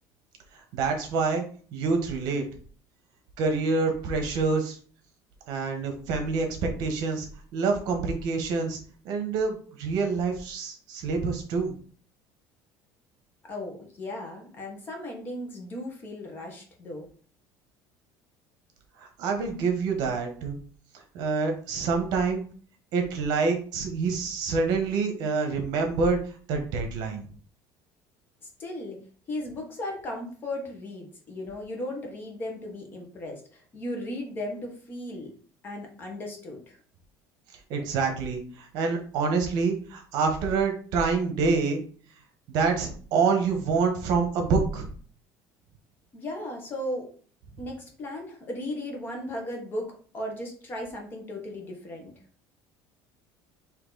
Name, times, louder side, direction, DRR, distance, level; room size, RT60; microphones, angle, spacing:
voice 1, 0.7-1.4 1.7-2.4 3.4-4.8 5.5-8.8 9.0-11.7 19.0-20.6 21.1-22.4 22.9-26.2 26.5-27.2 37.7-41.8 42.5-44.9, right 4 dB, 60° right, 4 dB, 1.1 m, -26 dB
voice 2, 13.4-17.1 28.6-29.0 29.3-35.3 35.6-36.8 46.1-47.1 47.6-52.1, left 1 dB, 25° left, 1 dB, 1.1 m, -36 dB
4.5 x 2.8 x 3.9 m, 0.43 s
cardioid pair, 165°, 8 cm